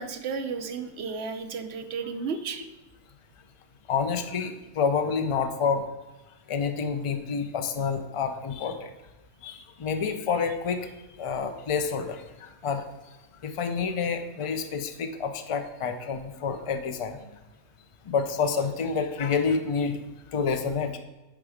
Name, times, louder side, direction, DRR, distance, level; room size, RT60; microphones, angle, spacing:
voice 1, 0.0-2.7, right 5 dB, 60° right, 7 dB, 0.9 m, -33 dB
voice 2, 3.9-5.8 6.5-8.9 9.4-10.9 11.2-12.8 13.4-17.2 18.1-20.0 20.3-21.0, left 5 dB, 40° left, 7 dB, 0.5 m, -28 dB
7.0 x 4.8 x 5.0 m, 1.1 s
omnidirectional pair, 1.3 m